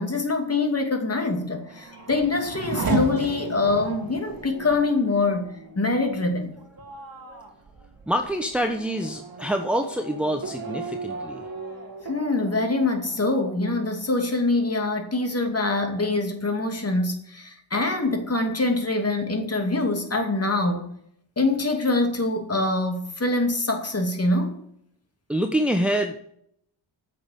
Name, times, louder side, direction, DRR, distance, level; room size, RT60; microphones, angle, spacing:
voice 1, 0.0-6.5 12.0-20.9 21.4-24.6, left 2 dB, 30° left, 2.4 m, -24 dB
Race car auto racing / Accelerating revving vroom, 1.4-14.6 15.0-15.7, right 4 dB, 45° right, 2.1 m, -35 dB
voice 2, 7.1-7.4 8.1-11.5 25.3-26.2, equal, ahead, 1.0 m, -26 dB
8.7 x 6.8 x 8.2 m
cardioid pair, 90°, 50 cm